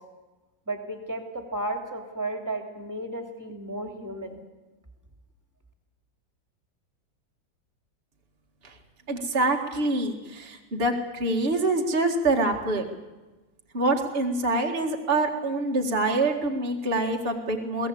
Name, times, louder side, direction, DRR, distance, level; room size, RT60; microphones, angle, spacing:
voice 1, 0.7-4.4, right 1 dB, 10° right, 4 dB, 3.0 m, -33 dB
voice 2, 9.1-12.8 13.7-17.9, right 2 dB, 30° right, 1 dB, 2.1 m, -25 dB
22.5 x 17.5 x 8.4 m, 1.2 s
omnidirectional pair, 2.1 m